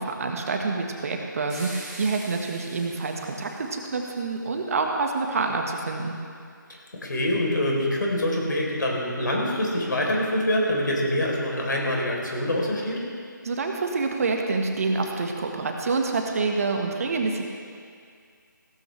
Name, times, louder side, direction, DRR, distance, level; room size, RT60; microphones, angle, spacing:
voice 1, 0.0-6.2 13.4-17.4, right 3 dB, 45° right, 2 dB, 1.5 m, -27 dB
sound 1, 1.5-3.9, right 2 dB, 5° right, 2.9 m, -43 dB
voice 2, 6.7-13.0, left 1 dB, 70° left, -2 dB, 3.9 m, -25 dB
16.5 x 14.5 x 3.4 m, 2.2 s
figure-of-eight pair, 155°, 11 cm